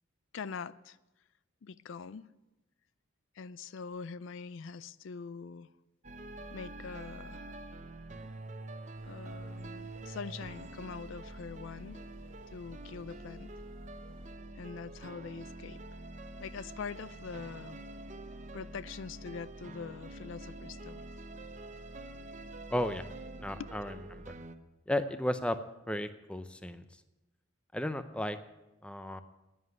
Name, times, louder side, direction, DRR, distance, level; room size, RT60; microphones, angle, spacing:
voice 1, 0.3-1.0 1.6-2.3 3.3-5.7 6.5-7.5 9.0-12.0 12.5-13.6 14.6-15.8 16.4-17.8 18.5-21.0 23.5-23.7, left 5 dB, 75° left, 0.4 m, -43 dB
sound 1, 6.0-24.6, right 2 dB, 35° right, 0.8 m, -46 dB
sound 2, 8.9-14.4, right 1 dB, 75° right, 1.2 m, -59 dB
voice 2, 22.7-23.1 23.4-24.3 24.9-25.6 25.9-26.8 27.7-28.4 28.8-29.2, left 1 dB, 5° left, 0.6 m, -34 dB
11.0 x 9.8 x 9.5 m
head